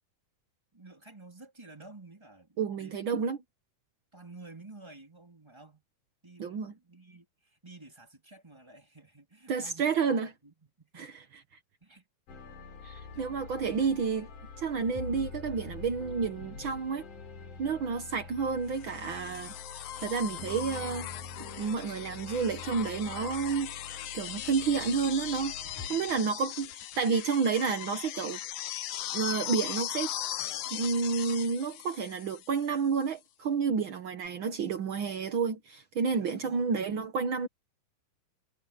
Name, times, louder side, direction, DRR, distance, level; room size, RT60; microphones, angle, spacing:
voice 1, 0.7-3.1 4.1-5.8 6.2-11.2 11.8-12.1 13.1-13.6 17.8-18.1 25.6-26.5 34.1-34.2 36.2-36.9, right 2 dB, 10° right, 3.7 m, -52 dB
voice 2, 2.6-3.4 6.4-6.7 9.5-10.3 11.0-11.1 12.8-14.3 14.6-17.1 17.6-21.1 21.6-23.7 24.1-25.5 25.9-28.4 29.1-30.1 30.7-37.5, right 5 dB, 65° right, 1.2 m, -30 dB
sound 1, 12.3-25.9, left 4 dB, 60° left, 5.6 m, -45 dB
sound 2, 18.8-32.8 34.3-34.4, left 12 dB, 85° left, 1.3 m, -39 dB
omnidirectional pair, 4.0 m